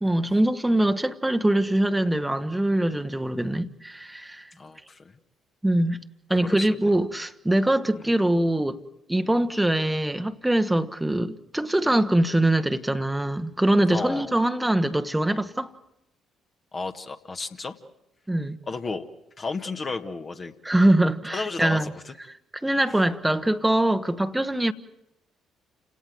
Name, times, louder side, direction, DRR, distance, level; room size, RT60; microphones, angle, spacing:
voice 1, 0.0-4.5 5.6-6.0 6.3-8.8 9.1-15.7 18.3-18.6 20.6-21.9 22.6-24.7, right 1 dB, 10° right, 1.2 m, -23 dB
voice 2, 4.6-5.1 6.3-6.9 7.9-8.0 13.9-14.3 16.7-17.8 18.7-19.1 19.4-20.5 21.3-22.1, left 4 dB, 35° left, 1.6 m, -33 dB
29.0 x 17.5 x 7.9 m
figure-of-eight pair, 50°, 0 cm